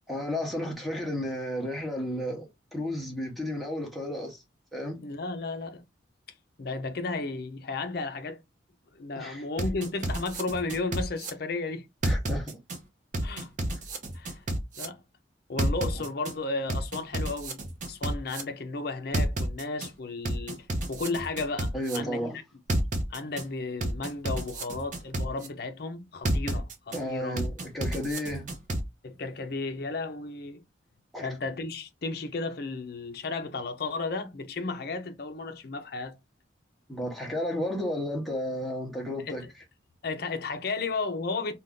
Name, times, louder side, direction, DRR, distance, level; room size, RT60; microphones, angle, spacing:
voice 1, 0.1-4.4 4.7-5.0 9.2-9.4 12.0-12.5 21.7-22.4 26.9-28.6 31.1-31.3 36.9-39.5, left 1 dB, ahead, 0.8 m, -33 dB
voice 2, 5.0-5.8 6.6-8.4 8.9-11.9 13.2-13.5 14.1-14.4 14.8-15.0 15.5-22.2 23.1-27.4 29.0-30.6 31.2-36.2 39.2-39.5 40.0-41.5, left 3 dB, 50° left, 0.5 m, -34 dB
sound 1, 9.6-11.3 12.0-12.8 13.1-14.8 15.6-16.3 16.7-18.4 19.1-19.9 20.2-22.0 22.7-23.4 23.8-25.5 26.2-27.0 27.4-28.8, right 1 dB, 40° right, 0.6 m, -30 dB
2.5 x 2.3 x 3.5 m
head